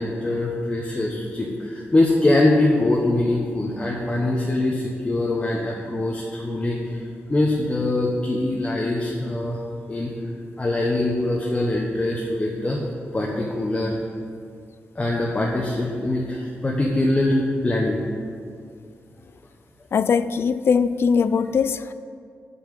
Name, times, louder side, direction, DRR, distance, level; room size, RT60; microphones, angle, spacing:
voice 1, 0.0-7.0 7.3-9.6 9.9-10.1 10.6-12.8 13.1-14.0 14.9-17.4 17.6-18.0, left 2 dB, 25° left, -3 dB, 1.1 m, -23 dB
voice 2, 19.9-21.9, left 6 dB, 55° left, 14 dB, 0.4 m, -21 dB
7.4 x 5.8 x 7.5 m, 2.2 s
cardioid pair, 100°, 5 cm